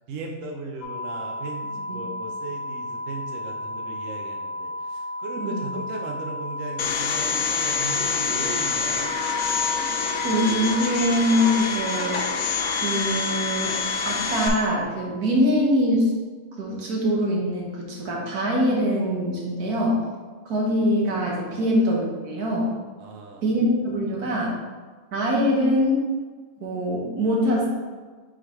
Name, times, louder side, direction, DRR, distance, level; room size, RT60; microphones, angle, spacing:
voice 1, 0.1-9.1 21.5-21.8 23.0-23.6, right 3 dB, 60° right, 1 dB, 1.0 m, -37 dB
sound 1, 0.8-14.8, left 1 dB, 90° left, 1.3 m, -33 dB
Domestic sounds home sounds, 6.8-14.5, left 5 dB, 60° left, 0.9 m, -27 dB
voice 2, 10.2-12.2 12.7-13.8 14.0-16.1 16.6-20.0 20.5-22.7 23.4-24.5 25.1-26.0 26.6-27.7, equal, 80° right, -2 dB, 1.7 m, -23 dB
7.8 x 3.9 x 3.1 m, 1.4 s
omnidirectional pair, 1.6 m